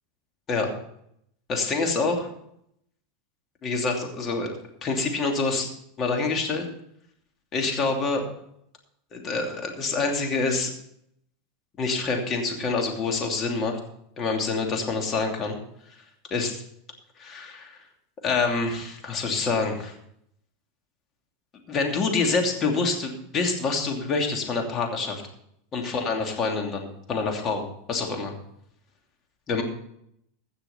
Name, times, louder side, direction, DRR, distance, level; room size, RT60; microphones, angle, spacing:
voice 1, 1.5-2.3 3.6-4.5 4.8-5.7 6.0-6.7 7.5-8.2 9.1-10.7 11.8-13.8 14.2-15.6 16.3-16.6 17.2-17.8 18.2-19.9 21.7-25.2 25.7-28.3 29.5-29.6, left 4 dB, 30° left, 2 dB, 2.7 m, -26 dB
16.0 x 6.2 x 5.6 m, 0.74 s
supercardioid pair, 125°, 0 cm